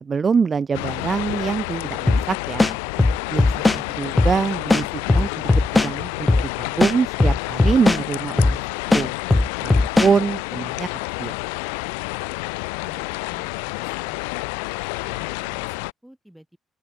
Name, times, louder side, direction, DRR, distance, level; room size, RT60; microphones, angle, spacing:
voice 1, 0.0-2.7 3.3-4.9 5.1-6.3 6.6-9.1 9.6-10.9 11.2-11.3, right 5 dB, 45° right, 0.6 m, -24 dB
sound 1, 0.7-15.9, left 33 dB, 85° left, 0.4 m, -29 dB
sound 2, 2.1-2.2 2.6-3.8 4.2-4.3 4.7-5.9 6.3-6.5 6.8-8.0 8.4-8.6 8.9-10.1, left 2 dB, 25° left, 0.6 m, -17 dB
voice 2, 12.8-13.5 13.8-14.4 15.0-16.6, right 1 dB, 5° right, 6.0 m, -49 dB
open air
hypercardioid pair, 45°, 0 cm